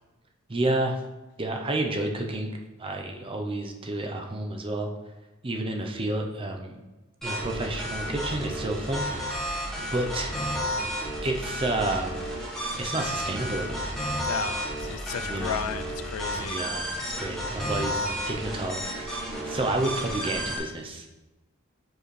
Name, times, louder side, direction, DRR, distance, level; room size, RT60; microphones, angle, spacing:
voice 1, 0.5-1.0 1.4-4.9 5.4-6.8 7.2-9.6 9.9-10.3 11.2-12.1 12.8-13.9 15.2-15.6 16.4-21.1, right 2 dB, 25° right, 3 dB, 0.6 m, -30 dB
sound 1, 7.2-20.6, equal, ahead, 1.4 m, -32 dB
voice 2, 14.2-16.6, left 8 dB, 75° left, 10 dB, 0.3 m, -34 dB
7.6 x 4.6 x 3.3 m, 1.1 s
head